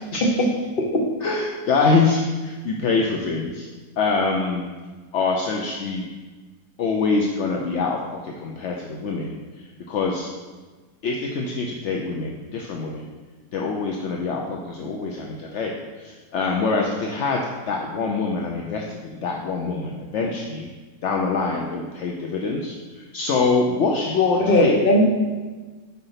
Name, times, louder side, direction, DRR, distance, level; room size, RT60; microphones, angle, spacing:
voice 1, 1.2-3.7 4.0-4.7 5.1-6.0 6.8-10.3 11.0-13.1 13.5-17.4 17.7-20.7 21.0-24.8, left 4 dB, 60° left, 0 dB, 0.7 m, -24 dB
voice 2, 24.4-25.0, left 1 dB, 40° left, 1 dB, 1.0 m, -18 dB
5.9 x 5.2 x 5.7 m, 1.3 s
omnidirectional pair, 1.8 m